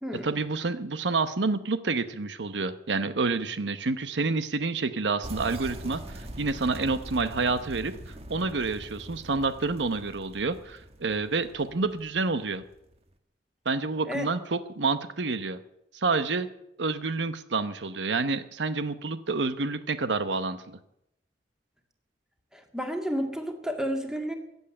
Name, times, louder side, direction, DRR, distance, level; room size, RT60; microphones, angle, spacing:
voice 1, 0.2-12.6 13.6-15.6 15.9-16.5 16.8-20.8, right 3 dB, 85° right, 11 dB, 0.9 m, -28 dB
sound 1, 5.2-12.9, right 1 dB, 35° right, 1.5 m, -43 dB
voice 2, 22.5-24.4, equal, 5° right, 3 dB, 2.0 m, -31 dB
15.5 x 8.3 x 9.8 m, 0.82 s
head